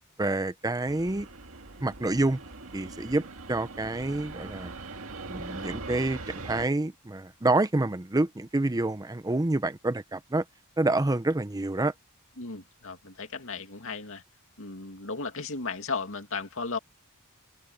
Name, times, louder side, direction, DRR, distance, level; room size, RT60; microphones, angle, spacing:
voice 1, 0.2-1.3 1.8-2.4 2.7-4.7 5.3-10.4 10.8-11.9, right 2 dB, 15° right, 0.6 m, -28 dB
Fixed-wing aircraft airplane, 0.9-6.7, right 3 dB, 65° right, 2.1 m, -41 dB
voice 2, 12.4-14.2 14.6-16.8, left 4 dB, 65° left, 2.5 m, -35 dB
head